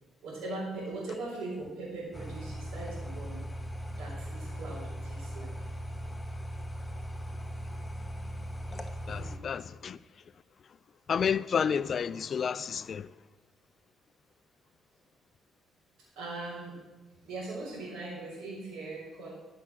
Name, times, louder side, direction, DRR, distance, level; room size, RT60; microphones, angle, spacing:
voice 1, 0.2-3.4 3.9-5.5 9.1-9.4 16.2-16.7 17.2-19.3, right 2 dB, 85° right, 4.0 m, -40 dB
sound 1, 2.1-9.4, equal, 15° left, 1.1 m, -39 dB
voice 2, 9.1-10.0 11.1-13.1, left 7 dB, 50° left, 0.3 m, -30 dB
13.5 x 6.0 x 6.1 m
cardioid pair, 90°, 0 cm